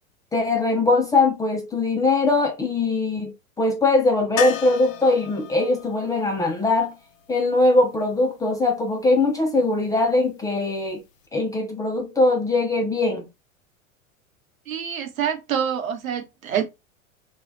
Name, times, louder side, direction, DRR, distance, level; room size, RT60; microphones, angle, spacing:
voice 1, 0.3-6.9 7.3-11.0 11.3-13.3, left 2 dB, 10° left, 0.4 m, -21 dB
sound 1, 4.4-8.2 10.9-11.0 11.2-11.3, left 9 dB, 70° left, 0.6 m, -34 dB
voice 2, 14.7-16.6, right 8 dB, 80° right, 1.0 m, -26 dB
3.2 x 2.3 x 3.0 m
hypercardioid pair, 100°, 40 cm